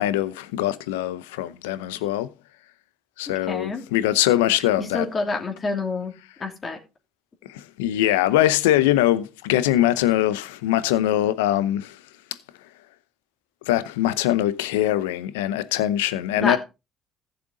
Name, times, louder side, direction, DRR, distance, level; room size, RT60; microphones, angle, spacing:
voice 1, 0.0-2.3 3.2-5.1 7.4-12.0 13.7-16.6, left 13 dB, 85° left, 0.7 m, -22 dB
voice 2, 3.5-3.8 4.8-6.1 6.4-6.8 16.4-16.6, left 3 dB, 40° left, 2.9 m, -27 dB
15.0 x 6.7 x 3.8 m
hypercardioid pair, 55°, 0 cm